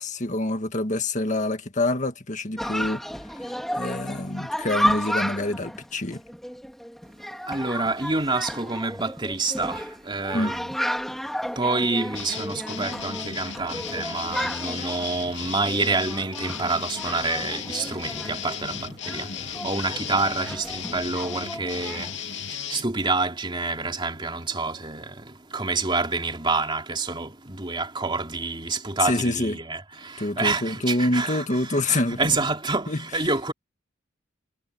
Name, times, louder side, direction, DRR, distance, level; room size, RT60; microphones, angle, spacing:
voice 1, 0.0-3.0 3.3-3.5 3.8-6.2 10.3-10.5 29.0-29.6 30.2-32.2 32.9-33.0, left 2 dB, 40° left, 1.9 m, -26 dB
Chatter, 2.6-22.2, equal, ahead, 2.7 m, -33 dB
voice 2, 7.5-10.8 11.6-19.3 19.6-22.1 22.7-25.2 25.5-33.5, right 3 dB, 25° right, 3.0 m, -28 dB
sound 1, 12.2-22.8, left 8 dB, 60° left, 2.7 m, -35 dB
head